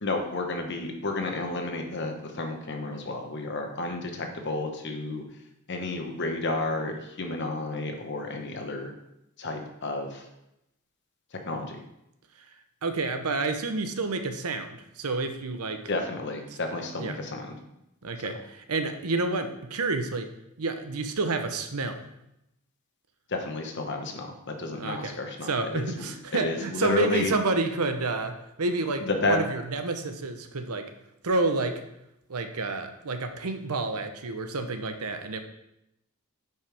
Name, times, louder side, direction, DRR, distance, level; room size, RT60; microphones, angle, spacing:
voice 1, 0.0-5.2 5.7-8.9 9.4-10.3 11.3-11.8 15.9-17.5 23.3-27.3 29.0-29.4, left 2 dB, 50° left, 4 dB, 1.1 m, -31 dB
voice 2, 12.8-15.8 17.0-17.2 18.0-18.4 18.7-20.3 20.6-22.0 24.8-25.2 25.4-30.9 31.2-31.8 32.3-35.4, right 3 dB, 80° right, 7 dB, 0.8 m, -29 dB
9.3 x 5.6 x 3.4 m, 0.84 s
head